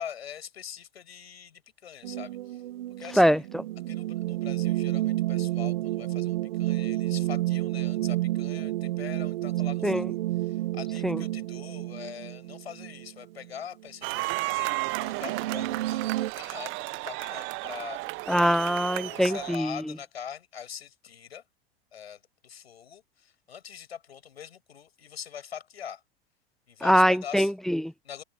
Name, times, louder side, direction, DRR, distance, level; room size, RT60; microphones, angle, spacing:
voice 1, 0.0-2.6 3.0-3.4 3.9-18.0 19.0-21.4 21.9-26.0 26.7-27.5 28.0-28.2, left 8 dB, 80° left, 6.9 m, -43 dB
sound 1, 2.0-13.5 13.8-13.9 14.9-16.3, right 16 dB, 65° right, 1.5 m, -30 dB
voice 2, 3.2-3.6 9.8-10.0 11.0-11.2 18.3-19.8 26.8-27.9, equal, ahead, 0.4 m, -23 dB
sound 2, 14.0-19.6, right 23 dB, 40° right, 1.0 m, -33 dB
open air
hypercardioid pair, 105°, 31 cm